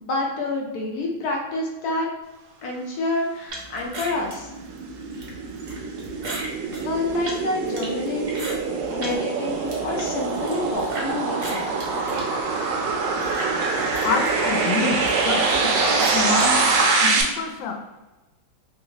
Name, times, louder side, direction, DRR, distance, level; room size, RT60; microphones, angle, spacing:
voice 1, 0.0-2.1 2.6-4.5 6.8-8.5 8.9-11.7, left 2 dB, 70° left, -1 dB, 1.0 m, -28 dB
sound 1, 3.5-9.2 9.5-11.1 11.4-16.8, right 2 dB, 55° right, 1.1 m, -36 dB
sound 2, 4.0-17.2, right 4 dB, 75° right, 1.2 m, -24 dB
voice 2, 14.0-17.7, left 4 dB, 90° left, 3 dB, 1.3 m, -27 dB
3.3 x 2.8 x 2.7 m, 1.1 s
omnidirectional pair, 2.0 m